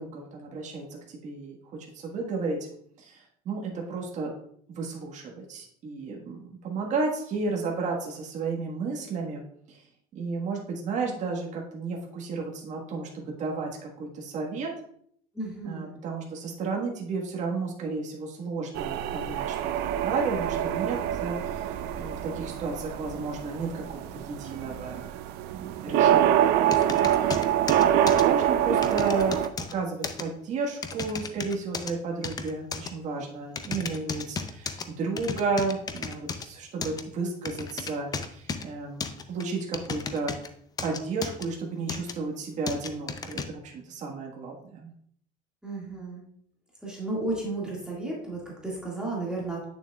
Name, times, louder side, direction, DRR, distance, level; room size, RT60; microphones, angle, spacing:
voice 1, 0.0-2.6 3.0-4.3 4.7-9.4 9.7-9.8 10.1-14.7 15.6-21.6 21.9-25.0 25.5-27.4 27.7-27.9 28.2-29.4 29.7-40.3 40.8-44.9, right 4 dB, 45° right, -1 dB, 1.5 m, -33 dB
voice 2, 15.3-16.0 27.8-28.3 45.6-46.2 46.8-49.6, right 2 dB, 5° right, -5 dB, 2.0 m, -33 dB
sound 1, 18.8-29.5, right 11 dB, 75° right, 0.5 m, -25 dB
sound 2, 26.7-28.3 28.8-29.7 30.0-30.2 30.8-31.9 32.2-32.9 33.6-34.9 35.2-36.5 36.8-37.0 37.5-38.7 39.0-40.5 40.8-41.5 41.9-42.1 42.7-43.5, left 5 dB, 20° left, 0.5 m, -34 dB
8.6 x 6.8 x 2.4 m, 0.66 s
cardioid pair, 150°, 17 cm